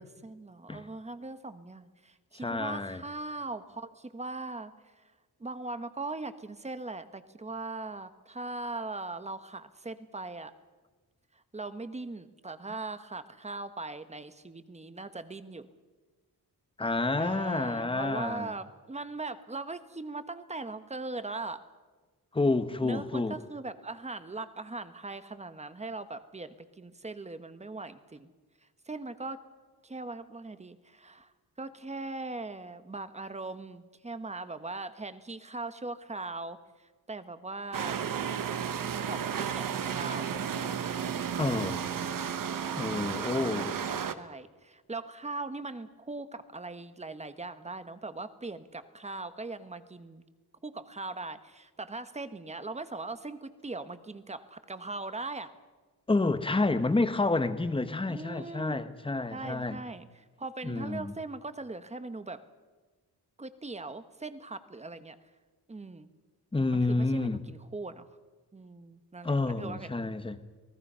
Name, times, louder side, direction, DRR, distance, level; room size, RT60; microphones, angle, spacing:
voice 1, 0.0-5.0 5.4-10.5 11.3-15.7 17.1-21.6 22.8-28.3 28.9-29.4 29.8-38.0 38.3-40.3 43.3-50.2 50.6-55.5 58.1-58.8 59.3-62.4 63.4-65.2 65.7-66.1 66.7-68.1 68.5-69.9, right 3 dB, 15° right, 1.1 m, -40 dB
voice 2, 2.4-3.0 16.8-18.5 22.3-23.4 41.4-41.8 42.7-43.8 56.1-59.8 60.6-61.1 66.5-67.4 69.2-70.4, left 3 dB, 15° left, 1.1 m, -29 dB
sound 1, 37.7-44.1, right 8 dB, 55° right, 1.2 m, -33 dB
27.5 x 19.0 x 5.6 m
wide cardioid pair, 135°, 38 cm